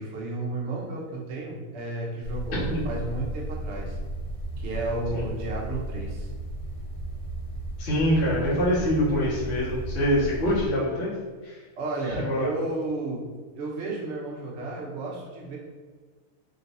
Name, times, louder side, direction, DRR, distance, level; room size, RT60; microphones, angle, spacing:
voice 1, 0.0-4.0 4.6-6.3 11.7-13.2 13.5-15.6, right 2 dB, 90° right, -3 dB, 0.6 m, -32 dB
sound 1, 2.2-10.7, right 1 dB, 80° left, 1.6 m, -34 dB
voice 2, 7.8-11.1 11.4-11.6 12.1-12.5, equal, 50° left, -8 dB, 0.8 m, -25 dB
3.9 x 2.3 x 4.0 m, 1.4 s
omnidirectional pair, 2.4 m